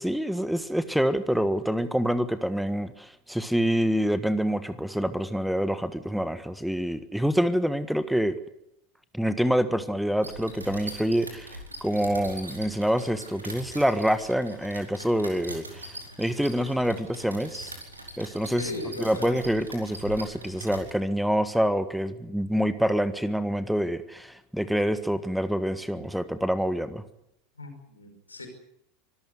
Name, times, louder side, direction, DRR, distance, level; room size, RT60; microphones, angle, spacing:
voice 1, 0.0-8.4 9.1-15.9 16.2-17.7 18.2-18.7 19.0-27.0, equal, ahead, 13 dB, 1.5 m, -26 dB
sound 1, 10.2-20.9, right 1 dB, 85° right, 4.6 m, -42 dB
voice 2, 18.5-19.4 27.6-28.5, left 2 dB, 85° left, 5 dB, 5.4 m, -38 dB
24.5 x 14.5 x 9.5 m, 0.80 s
figure-of-eight pair, 80°, 0 cm